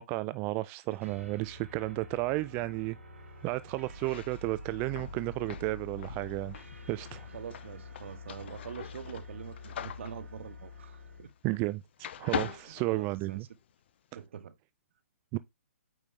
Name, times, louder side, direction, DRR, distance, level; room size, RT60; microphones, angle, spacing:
voice 1, 0.0-3.0 3.4-6.6 6.9-7.3 11.4-13.5 15.3-15.4, right 20 dB, 25° right, 0.4 m, -33 dB
sound 1, 1.0-11.3, left 1 dB, 75° right, 3.8 m, -47 dB
sound 2, 3.9-11.7 12.0-13.6, left 9 dB, 50° left, 0.8 m, -42 dB
voice 2, 7.3-11.3 12.4-13.5 14.1-14.6, right 8 dB, 55° right, 1.0 m, -44 dB
9.0 x 5.2 x 3.3 m
hypercardioid pair, 135°, 8 cm